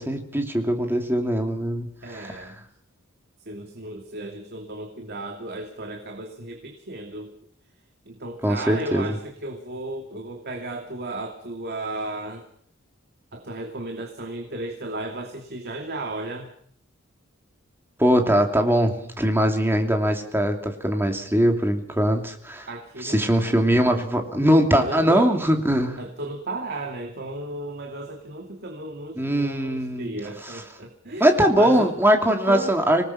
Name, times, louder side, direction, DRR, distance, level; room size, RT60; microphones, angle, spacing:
voice 1, 0.0-2.5 8.4-9.2 18.0-22.7 23.0-26.0 29.2-30.1 31.2-33.1, equal, 10° right, 4 dB, 2.7 m, -21 dB
voice 2, 2.0-2.5 3.4-7.4 8.1-12.4 13.3-16.5 22.7-23.6 23.9-24.0 24.7-25.3 26.0-31.9 32.3-32.7, right 2 dB, 55° right, 3 dB, 2.6 m, -34 dB
26.0 x 19.0 x 5.8 m, 0.63 s
head